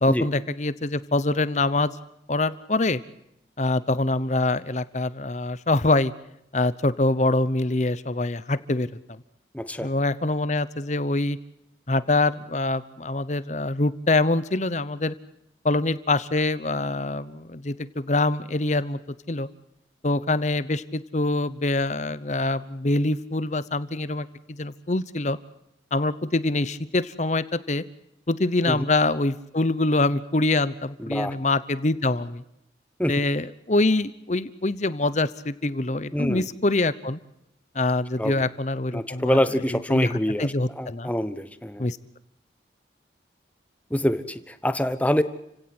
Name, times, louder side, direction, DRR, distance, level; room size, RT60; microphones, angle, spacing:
voice 1, 0.0-2.0 2.3-3.0 3.6-6.1 6.5-8.9 9.8-11.4 11.9-15.1 15.6-19.0 19.3-19.5 20.0-25.4 25.9-27.8 28.3-32.4 33.1-37.2 37.7-39.4 39.7-41.1 41.8-42.0, left 2 dB, 40° left, 15 dB, 0.9 m, -24 dB
voice 2, 9.5-9.9 28.7-28.8 31.0-31.3 33.0-33.1 36.1-36.4 38.2-38.4 38.9-40.5 40.8-41.9 43.9-45.2, equal, 10° left, 11 dB, 1.1 m, -25 dB
30.0 x 17.0 x 7.9 m, 0.80 s
head